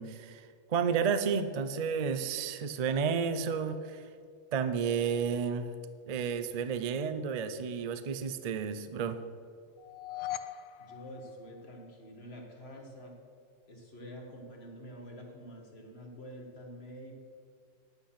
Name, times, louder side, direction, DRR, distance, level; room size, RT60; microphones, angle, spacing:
voice 1, 0.0-4.0 4.5-5.7 6.1-9.2, right 6 dB, 80° right, 10 dB, 0.3 m, -31 dB
sound 1, 9.8-12.1, left 12 dB, 90° left, 0.5 m, -41 dB
voice 2, 10.8-13.2 13.7-17.1, equal, 40° left, 1 dB, 1.8 m, -47 dB
10.0 x 9.0 x 5.8 m, 2.2 s
omnidirectional pair, 1.6 m